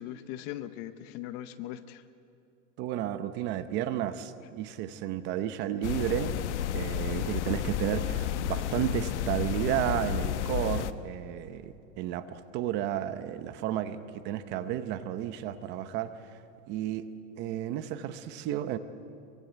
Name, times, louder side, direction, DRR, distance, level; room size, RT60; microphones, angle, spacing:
voice 1, 0.0-2.0, left 12 dB, 30° left, 13 dB, 0.7 m, -39 dB
voice 2, 2.8-6.3 6.7-16.1 16.7-17.1 17.4-18.8, right 11 dB, 25° right, 12 dB, 0.8 m, -32 dB
sound 1, 5.8-10.9, left 10 dB, 60° left, 1.1 m, -31 dB
24.0 x 23.5 x 8.1 m, 2.7 s
supercardioid pair, 165°, 40 cm